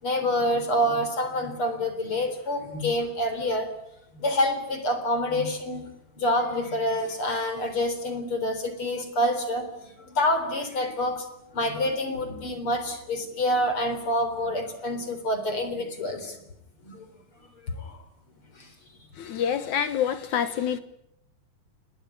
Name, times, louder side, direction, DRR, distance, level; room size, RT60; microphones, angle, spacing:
voice 1, 0.0-3.7 4.1-5.9 6.2-11.3 11.5-16.4 16.8-17.1 17.6-18.0 18.6-18.7, left 1 dB, 35° left, 4.3 m, -27 dB
voice 2, 19.1-20.8, left 8 dB, 65° left, 2.3 m, -27 dB
28.5 x 20.0 x 9.9 m
omnidirectional pair, 4.3 m